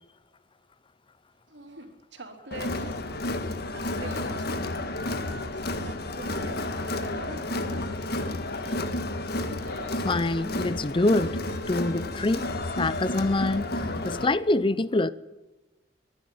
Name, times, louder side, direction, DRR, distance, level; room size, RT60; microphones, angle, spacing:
sound 1, 1.5-2.0 2.6-3.1 3.9-4.5 5.4-5.9 6.8-7.1 8.5-8.9 9.5-10.1 10.8-11.3, right 1 dB, 90° right, 3.4 m, -49 dB
voice 1, 1.7-2.9 3.7-8.3, right 2 dB, 70° right, 3.5 m, -44 dB
Crowd, 2.5-14.3, left 2 dB, 60° left, 1.7 m, -31 dB
voice 2, 9.9-11.4 11.7-12.5 12.8-13.8 14.0-15.1, left 2 dB, 30° left, 0.6 m, -25 dB
22.5 x 11.5 x 10.0 m
head